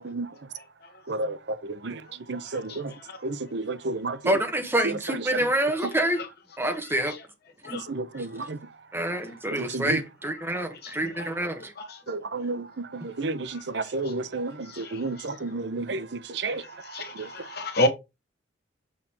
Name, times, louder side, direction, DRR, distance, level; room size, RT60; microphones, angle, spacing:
voice 1, 1.1-1.4 1.6-2.0 2.3-2.9 3.2-4.4 4.8-5.5 7.9-8.6 9.5-10.0 12.1-14.5 14.8-16.1 16.3-16.6 17.2-17.3, right 3 dB, 60° right, 0.7 m, -31 dB
voice 2, 4.2-6.2 6.6-7.1 7.6-7.8 8.2-8.3 8.9-11.7, right 1 dB, 10° right, 1.2 m, -27 dB
voice 3, 14.7-15.0 16.4-16.5 16.9-17.9, left 1 dB, 50° left, 1.3 m, -28 dB
6.5 x 5.3 x 2.9 m
head